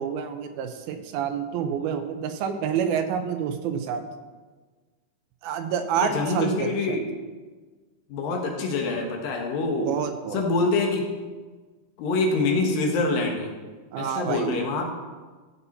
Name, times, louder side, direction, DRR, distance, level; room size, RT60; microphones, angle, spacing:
voice 1, 0.0-4.0 5.4-7.0 9.9-10.4 13.9-14.6, right 7 dB, 85° right, 7 dB, 2.7 m, -28 dB
voice 2, 6.0-7.0 8.1-9.9 10.3-11.1 12.0-13.5 14.0-14.9, left 3 dB, 70° left, 2 dB, 2.9 m, -25 dB
14.0 x 7.1 x 4.2 m, 1.4 s
omnidirectional pair, 4.3 m